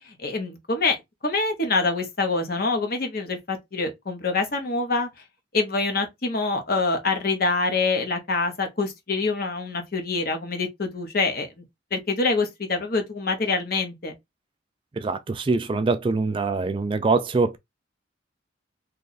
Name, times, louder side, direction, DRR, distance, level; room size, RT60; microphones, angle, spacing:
voice 1, 0.2-1.0 1.2-5.1 5.5-11.5 11.9-14.1, left 3 dB, 55° left, 1.0 m, -25 dB
voice 2, 15.0-17.6, right 3 dB, 25° right, 0.3 m, -24 dB
2.8 x 2.5 x 4.0 m
head